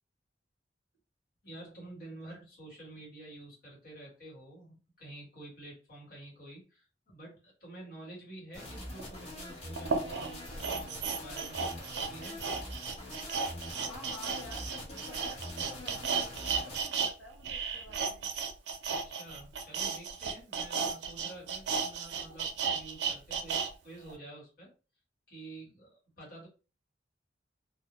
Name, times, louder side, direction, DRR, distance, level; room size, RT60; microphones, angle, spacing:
voice 1, 1.4-12.4 18.9-24.7 25.3-26.5, right 2 dB, 55° left, -3 dB, 1.2 m, -49 dB
sound 1, 8.5-16.8, left 1 dB, 35° left, 1.0 m, -44 dB
sound 2, 9.0-9.1 9.8-17.1 17.4-23.7 24.1-24.2, right 5 dB, 75° right, 0.4 m, -34 dB
voice 2, 13.7-18.3, left 2 dB, 85° left, -1 dB, 0.6 m, -50 dB
2.1 x 2.0 x 2.9 m, 0.34 s
head